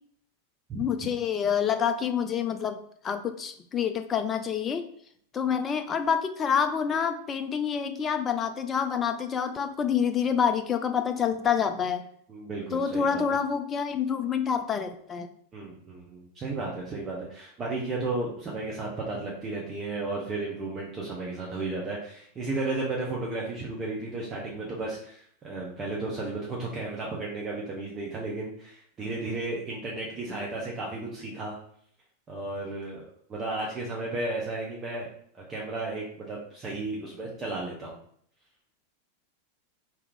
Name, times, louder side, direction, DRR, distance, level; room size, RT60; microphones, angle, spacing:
voice 1, 0.7-2.8 3.0-4.9 5.3-12.0 12.7-15.3, left 7 dB, 25° left, 8 dB, 0.4 m, -27 dB
voice 2, 12.3-13.2 15.5-31.6 32.3-33.0 33.3-35.1 35.3-38.0, right 2 dB, 25° right, -3 dB, 0.8 m, -34 dB
3.5 x 2.8 x 3.8 m, 0.64 s
figure-of-eight pair, 90°, 0 cm